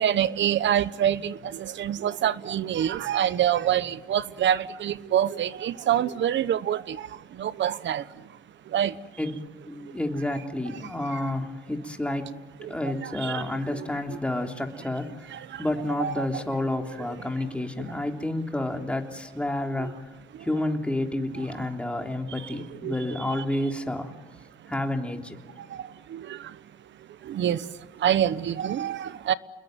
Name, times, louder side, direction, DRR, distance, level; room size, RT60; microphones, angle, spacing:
voice 1, 0.0-7.0 7.4-8.0 8.7-8.9 13.0-13.4 16.0-16.3 19.8-19.9 22.8-22.9 26.1-26.2 27.3-27.6 28.0-29.3, right 10 dB, 65° right, 1.1 m, -25 dB
voice 2, 9.7-12.3 12.7-19.9 20.4-24.1 24.7-25.4, left 1 dB, 5° left, 3.4 m, -30 dB
29.0 x 21.5 x 9.3 m
cardioid pair, 90°, 20 cm